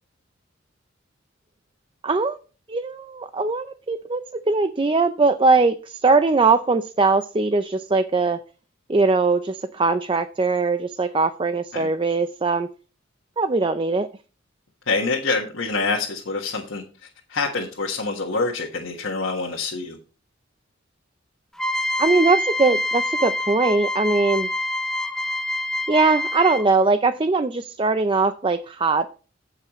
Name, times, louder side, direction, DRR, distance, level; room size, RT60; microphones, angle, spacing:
voice 1, 2.0-2.4 2.7-8.4 8.9-12.7 13.4-14.1 22.0-24.5 25.9-29.1, right 3 dB, 25° right, 10 dB, 0.5 m, -21 dB
voice 2, 14.9-20.0, left 3 dB, 70° left, -1 dB, 1.5 m, -26 dB
sound 1, 21.6-26.8, left 1 dB, 5° left, 1.0 m, -26 dB
16.0 x 5.7 x 3.1 m, 0.35 s
head